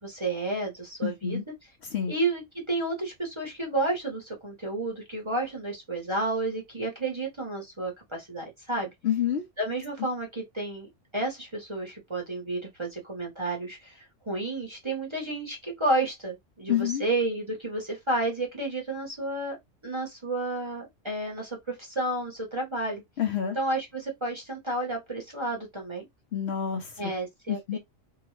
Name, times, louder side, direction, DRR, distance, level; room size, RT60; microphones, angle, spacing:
voice 1, 0.0-1.4 2.1-8.9 9.6-10.9 11.1-19.6 19.8-23.0 23.5-26.1 27.0-27.8, right 2 dB, 25° right, 0.9 m, -31 dB
voice 2, 1.0-1.4 1.9-2.1 9.0-9.4 16.7-17.0 23.2-23.6 26.3-27.1 27.5-27.8, left 9 dB, 60° left, 0.8 m, -28 dB
2.8 x 2.2 x 3.1 m
omnidirectional pair, 1.4 m